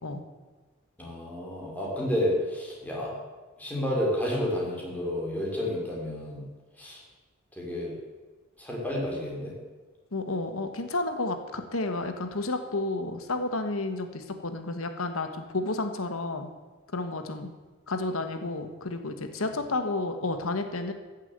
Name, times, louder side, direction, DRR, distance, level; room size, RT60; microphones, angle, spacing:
voice 1, 1.0-3.2 3.6-6.4 6.8-7.0 7.6-8.0 8.6-9.6 19.5-19.6, left 1 dB, 10° left, -3 dB, 3.9 m, -30 dB
voice 2, 10.1-16.5 16.9-17.5 17.9-20.9, left 2 dB, 85° left, 7 dB, 1.4 m, -31 dB
14.5 x 7.4 x 8.1 m, 1.3 s
head